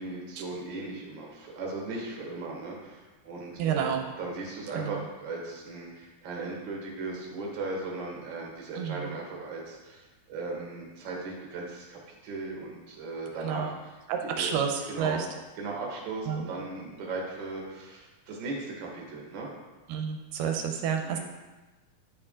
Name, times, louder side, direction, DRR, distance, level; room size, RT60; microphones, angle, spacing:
voice 1, 0.0-14.5 14.9-15.2 15.6-19.5 21.0-21.2, right 3 dB, 50° right, -1 dB, 1.6 m, -37 dB
voice 2, 3.6-4.0 4.8-5.0 8.8-9.1 13.4-13.7 14.1-15.3 16.3-16.5 19.9-21.2, right 7 dB, 85° right, 4 dB, 2.2 m, -30 dB
10.0 x 4.7 x 3.7 m, 1.2 s
omnidirectional pair, 3.9 m